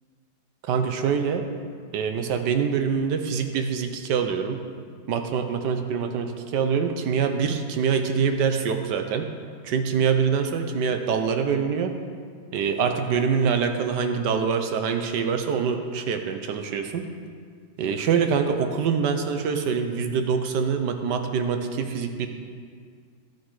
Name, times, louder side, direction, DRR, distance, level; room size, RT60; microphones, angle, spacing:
voice 1, 0.6-1.5 1.9-4.6 5.1-9.3 9.6-11.9 12.5-17.1 17.8-22.3, right 6 dB, 70° right, 6 dB, 1.3 m, -25 dB
12.5 x 7.4 x 4.7 m, 2.1 s
omnidirectional pair, 2.0 m